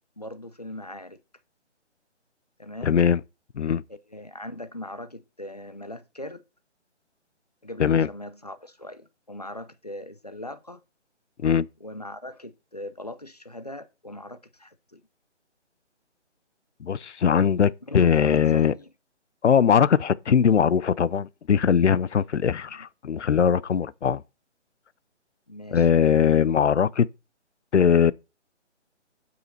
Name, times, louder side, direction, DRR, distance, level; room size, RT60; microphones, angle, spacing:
voice 1, 0.2-1.2 2.6-3.0 3.9-6.4 7.6-10.8 11.8-15.0 17.8-18.9 22.7-22.9 25.5-25.9, left 1 dB, 35° left, 0.6 m, -40 dB
voice 2, 2.8-3.2 3.6-3.8 7.8-8.1 11.4-11.7 16.8-18.7 19.4-24.2 25.7-27.1 27.7-28.1, left 7 dB, 70° left, 0.7 m, -20 dB
12.0 x 5.8 x 4.2 m
hypercardioid pair, 180°, 36 cm